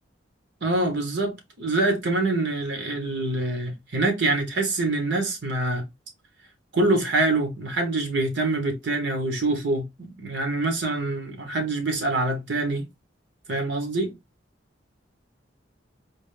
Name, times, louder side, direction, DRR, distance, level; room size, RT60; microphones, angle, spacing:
voice 1, 0.6-5.8 6.7-12.8 13.5-14.1, right 2 dB, 70° right, 1.2 m, -25 dB
4.1 x 2.1 x 3.2 m
head